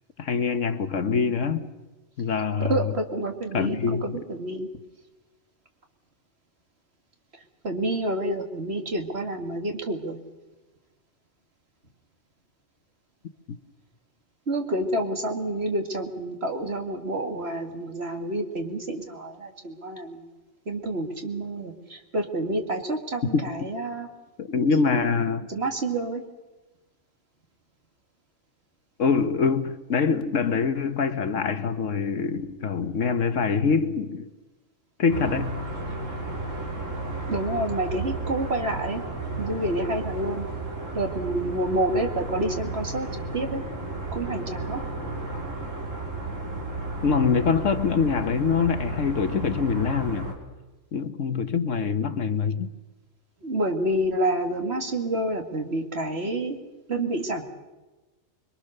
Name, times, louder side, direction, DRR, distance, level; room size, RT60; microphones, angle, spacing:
voice 1, 0.2-1.7 2.2-2.9 3.5-4.2 13.5-13.6 23.3-23.5 24.4-25.5 29.0-34.3 35.0-35.6 47.0-50.3 50.9-52.7, left 5 dB, 65° left, 1.4 m, -24 dB
voice 2, 2.6-4.7 7.6-10.2 14.5-20.2 20.7-24.1 25.5-26.2 37.3-39.0 39.4-40.5 40.9-43.1 43.3-43.6 44.1-44.8 53.4-56.6 56.9-57.4, right 1 dB, 50° right, 2.5 m, -28 dB
sound 1, 35.1-50.3, right 2 dB, 65° right, 3.8 m, -33 dB
25.5 x 23.0 x 6.7 m
omnidirectional pair, 1.4 m